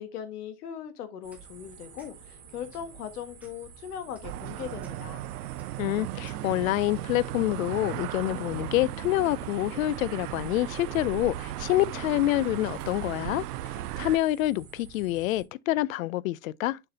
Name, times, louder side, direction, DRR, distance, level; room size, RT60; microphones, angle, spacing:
voice 1, 0.0-5.2, left 9 dB, 85° left, 1.7 m, -39 dB
sound 1, 1.2-15.4, right 6 dB, 35° right, 2.7 m, -51 dB
sound 2, 1.3-1.5 2.0-2.1 2.7-2.9 3.4-3.7 4.1-4.3 4.8-4.9 5.6-5.7 6.2-6.4, right 2 dB, 5° right, 0.7 m, -56 dB
sound 3, 4.2-14.2, right 14 dB, 90° right, 0.6 m, -36 dB
voice 2, 5.8-13.4 14.0-16.8, left 16 dB, 65° left, 0.5 m, -27 dB
6.8 x 5.8 x 2.6 m
supercardioid pair, 175°, 44 cm